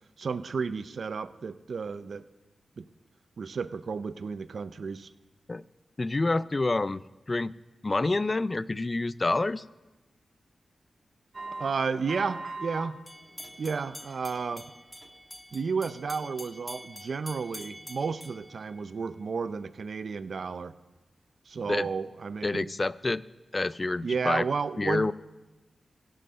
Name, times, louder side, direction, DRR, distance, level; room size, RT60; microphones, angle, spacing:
voice 1, 0.2-2.2 2.8-2.9 3.4-5.1 11.6-13.0 13.6-14.7 15.5-20.8 21.5-22.8 24.0-25.1, right 5 dB, 75° right, 14 dB, 0.5 m, -32 dB
voice 2, 6.0-7.0 7.3-7.5 7.8-9.6 21.7-21.9 22.4-23.2 23.5-24.4 24.8-25.1, left 2 dB, 40° left, 18 dB, 0.4 m, -27 dB
sound 1, 11.3-12.9 13.3-13.9 14.3-14.5 15.0-15.1, right 2 dB, 50° right, 1.7 m, -40 dB
sound 2, 13.1-19.3, equal, 5° left, 0.7 m, -46 dB
16.5 x 6.4 x 5.6 m, 1.1 s
cardioid pair, 45°, 0 cm